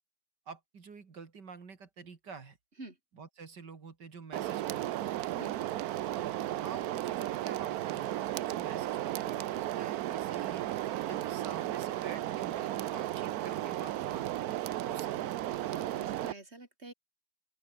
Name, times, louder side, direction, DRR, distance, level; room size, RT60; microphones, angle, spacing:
voice 1, 0.5-2.6 3.1-5.2 6.1-6.3 6.6-10.7 11.1-14.4 14.8-15.3, right 5 dB, 50° right, 3.0 m, -48 dB
sound 1, 4.3-16.3, right 14 dB, 85° right, 0.8 m, -34 dB
voice 2, 15.6-16.9, right 2 dB, 30° right, 4.5 m, -47 dB
open air
omnidirectional pair, 2.3 m